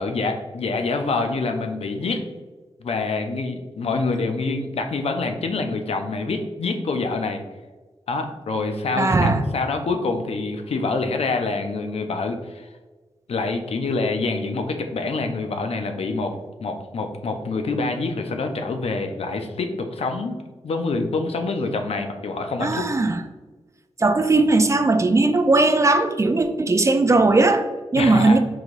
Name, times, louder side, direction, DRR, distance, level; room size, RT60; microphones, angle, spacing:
voice 1, 0.0-2.2 2.8-7.4 8.1-12.7 13.3-16.3 16.6-22.9 28.0-28.4, left 3 dB, 70° left, 6 dB, 0.5 m, -26 dB
voice 2, 9.0-9.4 22.6-23.2 24.0-28.4, right 2 dB, 30° right, 8 dB, 0.3 m, -18 dB
3.9 x 2.9 x 2.5 m, 1.3 s
cardioid pair, 55°, 11 cm